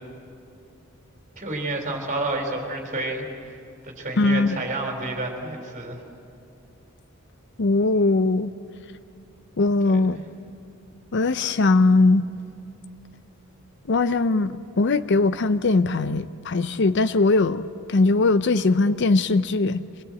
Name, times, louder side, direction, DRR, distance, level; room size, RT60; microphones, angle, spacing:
voice 1, 1.4-3.2 3.8-6.0 9.8-10.2, right 2 dB, 35° right, 2 dB, 3.8 m, -30 dB
voice 2, 4.2-4.6 7.6-8.5 9.6-10.2 11.1-12.3 13.9-19.8, left 3 dB, 55° left, 13 dB, 0.5 m, -20 dB
25.0 x 20.0 x 7.7 m, 2.5 s
head